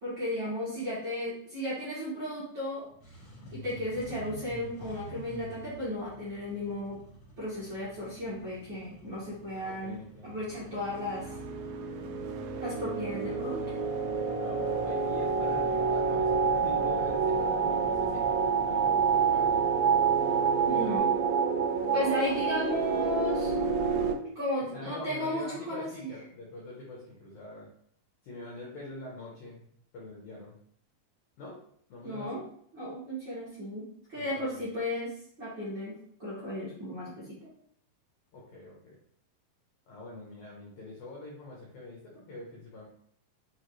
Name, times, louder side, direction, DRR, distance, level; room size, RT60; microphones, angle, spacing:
voice 1, 0.0-2.8 3.5-7.0 7.4-11.3 12.6-13.6 20.7-21.1 21.9-23.5 24.3-26.1 32.0-32.4 32.7-35.9 36.2-37.5, left 1 dB, 70° right, -11 dB, 1.1 m, -34 dB
Engine starting, 2.8-21.0, left 1 dB, 50° left, 1.2 m, -48 dB
voice 2, 9.5-10.5 13.1-13.2 14.4-18.4 18.6-18.8 19.1-19.7 24.7-27.7 28.2-29.7 29.9-30.5 31.4-31.6 31.9-32.4 34.1-34.6 38.3-39.0 39.9-42.9, left 2 dB, 85° left, -3 dB, 1.7 m, -44 dB
sound 1, 10.8-24.2, right 5 dB, 90° right, 2.2 m, -28 dB
6.6 x 2.5 x 3.1 m, 0.65 s
omnidirectional pair, 5.0 m